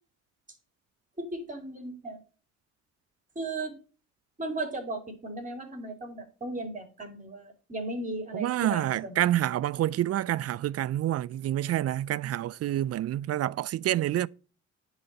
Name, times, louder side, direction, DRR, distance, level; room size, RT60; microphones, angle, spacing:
voice 1, 1.2-2.2 3.3-3.7 4.4-9.1, right 2 dB, 25° right, 3.1 m, -36 dB
voice 2, 8.3-14.3, right 13 dB, 55° right, 0.4 m, -28 dB
9.7 x 4.2 x 6.7 m
cardioid pair, 90°, 30 cm